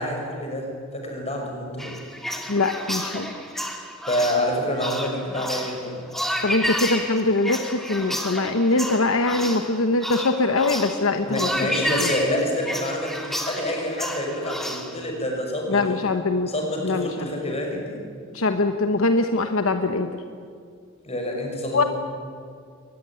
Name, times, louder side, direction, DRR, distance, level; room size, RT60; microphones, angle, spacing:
voice 1, 0.0-2.0 4.1-6.0 9.3-9.5 11.2-16.0 16.5-18.0 21.0-21.9, left 1 dB, 30° left, 1 dB, 5.9 m, -27 dB
sound 1, 1.8-15.0, equal, ahead, 2.3 m, -31 dB
voice 2, 2.5-3.3 6.4-7.6 7.9-11.5 15.7-16.5 16.8-17.1 18.4-20.1 21.7-21.8, left 3 dB, 70° left, 7 dB, 1.1 m, -22 dB
22.0 x 19.5 x 10.0 m, 2.2 s
head